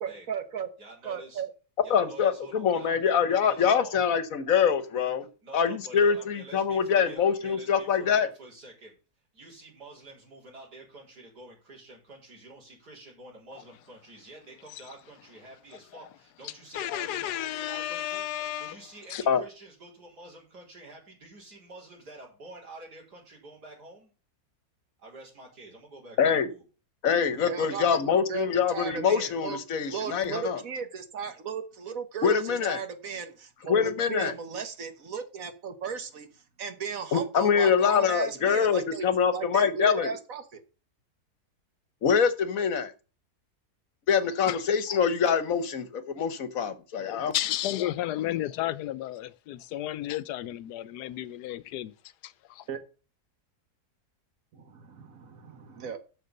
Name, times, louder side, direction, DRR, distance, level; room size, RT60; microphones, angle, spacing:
voice 1, 0.0-0.7 1.0-1.5 27.2-29.6 29.9-39.1 39.3-40.6 52.7-52.8 54.5-56.0, right 6 dB, 60° right, 1.5 m, -36 dB
voice 2, 0.8-1.4 1.8-4.0 5.4-9.0 9.3-24.1 25.0-26.6, right 2 dB, 85° right, 4.5 m, -48 dB
voice 3, 1.9-5.3 5.5-8.3 19.3-19.4 26.2-26.5 27.0-30.6 32.2-32.8 33.7-34.3 37.1-40.1 42.0-42.9 44.1-47.3, left 7 dB, 60° left, 1.3 m, -24 dB
voice 4, 16.4-18.8 19.1-19.2 44.4-44.6 47.1-51.9 52.2-52.7, left 13 dB, 90° left, 1.2 m, -33 dB
6.7 x 6.6 x 6.6 m
omnidirectional pair, 1.7 m